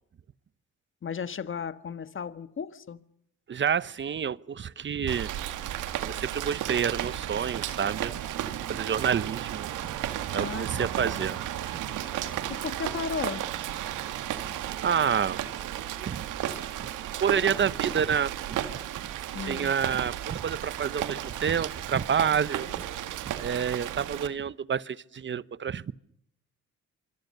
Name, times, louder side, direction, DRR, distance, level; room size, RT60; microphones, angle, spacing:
voice 1, 1.0-3.0 10.3-11.4 12.5-13.5 19.3-19.7, left 6 dB, 40° left, 1.6 m, -35 dB
voice 2, 3.5-5.3 6.1-8.1 8.7-9.7 10.3-11.4 14.8-15.4 16.0-16.2 16.8-16.9 17.2-18.6 19.4-22.7 23.4-25.9, right 7 dB, 40° right, 0.9 m, -28 dB
Rain, 5.1-24.3, right 12 dB, 90° right, 2.1 m, -34 dB
25.5 x 25.5 x 6.7 m
cardioid pair, 90°, 30 cm